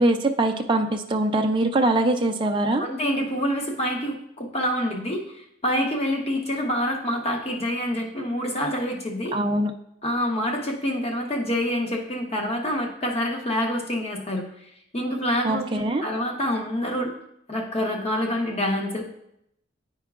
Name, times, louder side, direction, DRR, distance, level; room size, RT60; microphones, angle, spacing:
voice 1, 0.0-2.9 9.3-9.7 15.4-16.0, right 2 dB, 25° right, 4 dB, 0.4 m, -22 dB
voice 2, 2.8-9.4 10.0-14.5 14.9-17.1 17.5-19.0, equal, 35° left, 1 dB, 1.0 m, -27 dB
10.5 x 4.5 x 2.4 m, 0.78 s
head